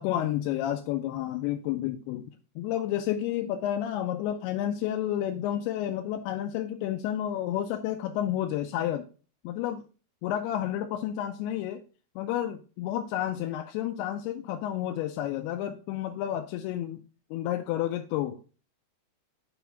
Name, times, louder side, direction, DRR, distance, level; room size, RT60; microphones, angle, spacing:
voice 1, 0.0-2.3 2.6-9.1 9.4-9.8 10.2-11.8 12.2-17.0 17.3-18.4, left 11 dB, 80° left, 4 dB, 2.4 m, -30 dB
6.9 x 3.1 x 5.7 m, 0.36 s
omnidirectional pair, 4.8 m